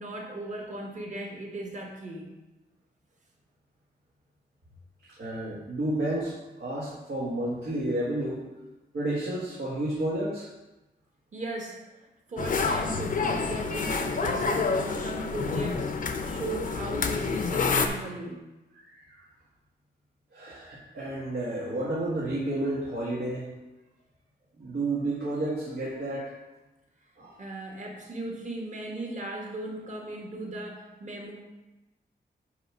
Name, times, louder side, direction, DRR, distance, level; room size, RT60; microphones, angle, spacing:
voice 1, 0.0-2.3 11.3-18.4 27.4-31.3, right 2 dB, 45° right, 0 dB, 1.4 m, -37 dB
voice 2, 5.2-8.4 8.9-10.5 18.7-19.2 20.3-23.5 24.6-26.3 27.2-27.3, right 1 dB, 85° right, -7 dB, 1.8 m, -31 dB
sound 1, 12.4-17.9, left 4 dB, 50° left, 0.6 m, -28 dB
9.4 x 3.2 x 6.0 m, 1.1 s
wide cardioid pair, 175°, 18 cm